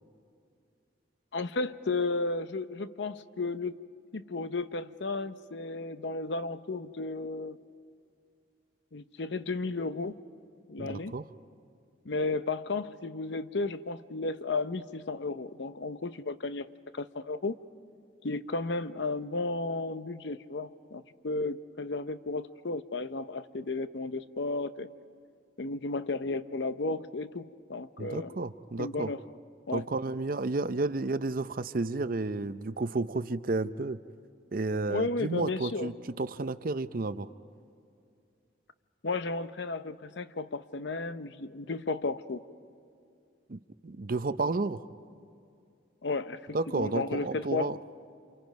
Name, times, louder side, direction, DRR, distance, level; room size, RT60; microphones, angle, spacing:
voice 1, 1.3-3.7 4.1-7.6 8.9-10.2 10.7-11.2 12.0-16.7 16.9-17.6 18.2-24.9 25.6-28.3 28.8-29.2 29.7-29.8 34.9-35.9 39.0-42.4 46.0-47.7, left 3 dB, 70° left, 12 dB, 0.7 m, -33 dB
voice 2, 10.8-11.2 28.0-29.1 29.7-34.0 34.5-37.3 43.5-44.8 46.5-47.8, right 3 dB, 50° right, 13 dB, 0.6 m, -32 dB
29.0 x 27.5 x 5.3 m, 2.5 s
head